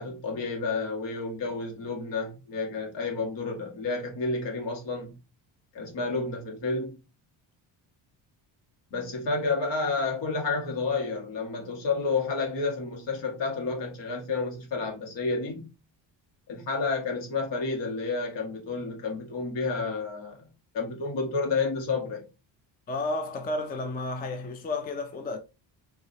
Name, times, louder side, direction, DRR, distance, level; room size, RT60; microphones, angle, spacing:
voice 1, 0.0-5.2 5.7-7.0 8.9-15.7 16.5-20.5 20.7-22.2, left 4 dB, 65° left, 1.7 m, -30 dB
voice 2, 22.9-25.4, left 2 dB, 20° left, 0.4 m, -32 dB
4.7 x 2.9 x 2.8 m
cardioid pair, 150°, 46 cm